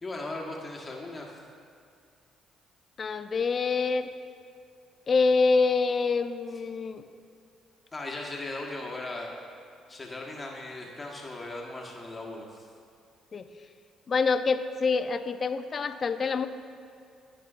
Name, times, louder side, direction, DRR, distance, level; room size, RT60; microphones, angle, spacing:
voice 1, 0.0-1.4 7.9-9.3 9.9-12.6, left 2 dB, 25° left, -1 dB, 1.3 m, -38 dB
voice 2, 3.0-4.1 5.1-7.0 13.3-13.4 14.1-16.5, left 4 dB, 45° left, 10 dB, 0.5 m, -26 dB
13.5 x 5.6 x 2.5 m, 2.4 s
hypercardioid pair, 55°, 0 cm